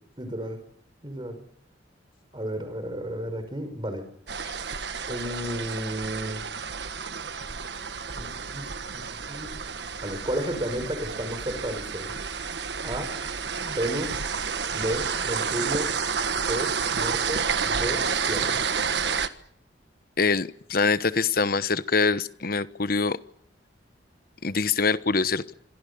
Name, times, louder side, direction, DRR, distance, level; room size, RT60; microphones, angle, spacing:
voice 1, 0.2-0.6 1.0-1.4 2.3-4.1 5.1-6.4 8.2-8.6 8.9-9.5 10.0-12.1 12.8-13.1 13.6-14.1 14.7-15.9 16.5-18.6, right 1 dB, 25° right, 9 dB, 5.5 m, -32 dB
sound 1, 4.3-19.3, right 6 dB, 65° right, 1.5 m, -30 dB
voice 2, 20.2-23.2 24.4-25.5, left 4 dB, 50° left, 14 dB, 1.1 m, -24 dB
26.0 x 26.0 x 7.0 m, 0.68 s
head